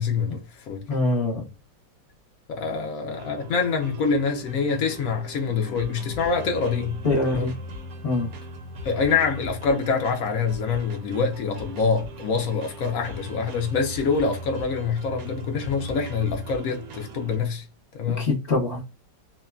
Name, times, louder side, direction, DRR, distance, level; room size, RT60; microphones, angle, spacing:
voice 1, 0.0-0.8 2.5-7.0 7.3-7.5 8.8-17.6 18.0-18.3, left 5 dB, 70° left, 0.8 m, -25 dB
voice 2, 0.9-1.4 7.0-7.5 8.0-8.3 18.2-19.0, left 2 dB, 45° left, 1.1 m, -24 dB
sound 1, 3.1-17.4, equal, 65° right, 0.9 m, -39 dB
3.0 x 2.1 x 2.3 m
omnidirectional pair, 2.0 m